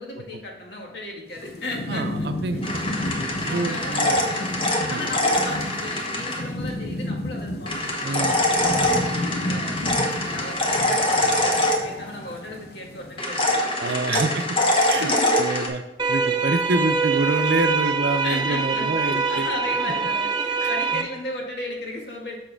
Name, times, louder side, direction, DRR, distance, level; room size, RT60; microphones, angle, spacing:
voice 1, 0.0-2.3 2.5-4.5 4.9-9.7 10.2-14.3 15.0-15.7 16.7-17.0 17.8-17.9 18.2-22.4, left 1 dB, 75° left, 0 dB, 1.7 m, -35 dB
Thunderstorm / Rain, 1.3-13.6, left 1 dB, 60° left, 0.8 m, -32 dB
voice 2, 1.9-2.8 3.5-4.2 4.9-5.0 8.0-8.4 13.8-14.4 14.9-15.8 16.1-19.5 20.6-21.0, right 3 dB, 70° right, 8 dB, 0.5 m, -26 dB
sound 1, 2.6-6.4 7.7-12.3 13.2-15.7, left 1 dB, 30° left, 1.0 m, -24 dB
sound 2, 16.0-21.0, right 4 dB, 25° right, 0.6 m, -24 dB
6.4 x 6.2 x 3.4 m, 0.97 s
head